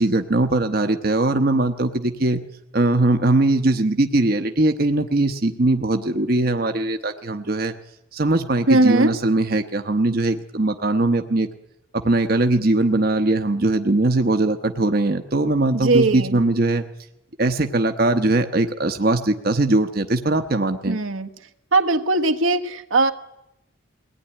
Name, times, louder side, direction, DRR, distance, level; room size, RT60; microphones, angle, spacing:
voice 1, 0.0-2.4 2.7-7.7 8.1-11.5 11.9-16.8 17.4-21.0, right 2 dB, 50° right, 6 dB, 1.0 m, -20 dB
voice 2, 8.7-9.1 15.7-16.4 20.9-21.3 21.7-23.1, right 2 dB, 85° right, 7 dB, 1.5 m, -19 dB
21.0 x 18.0 x 9.9 m, 0.86 s
head